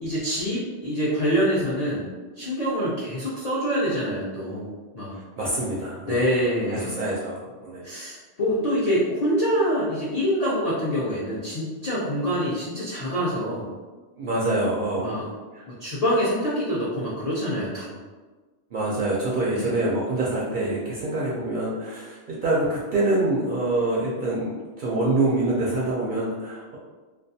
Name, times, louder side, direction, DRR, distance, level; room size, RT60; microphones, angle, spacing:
voice 1, 0.0-2.1 2.4-4.7 4.9-5.2 6.0-7.0 7.8-13.7 15.0-15.3 15.8-17.9 19.5-19.7, equal, 55° left, -8 dB, 0.4 m, -25 dB
voice 2, 5.4-6.2 6.7-7.8 14.2-15.2 15.5-15.6 18.7-26.8, right 2 dB, 60° right, -6 dB, 0.5 m, -25 dB
2.3 x 2.2 x 2.6 m, 1.3 s
omnidirectional pair, 1.2 m